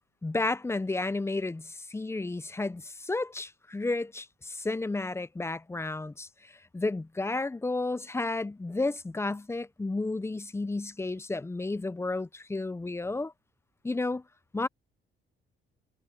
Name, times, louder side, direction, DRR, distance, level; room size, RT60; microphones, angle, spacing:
voice 1, 0.2-13.3 13.8-14.2 14.5-14.7, left 2 dB, 15° left, 0.6 m, -32 dB
cardioid pair, 90°, 20 cm